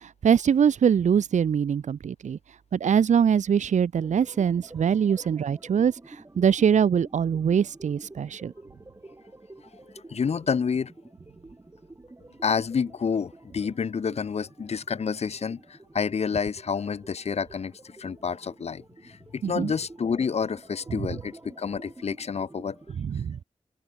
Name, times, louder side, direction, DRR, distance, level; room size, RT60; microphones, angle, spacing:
voice 1, 0.0-2.4 2.7-8.5 19.4-19.7 23.0-23.4, right 7 dB, 75° right, 0.5 m, -23 dB
sound 1, 3.9-22.9, right 2 dB, 25° right, 2.8 m, -49 dB
voice 2, 10.1-10.9 12.4-17.7 18.0-22.8, left 6 dB, 60° left, 0.6 m, -29 dB
wide cardioid pair, 90°, 12 cm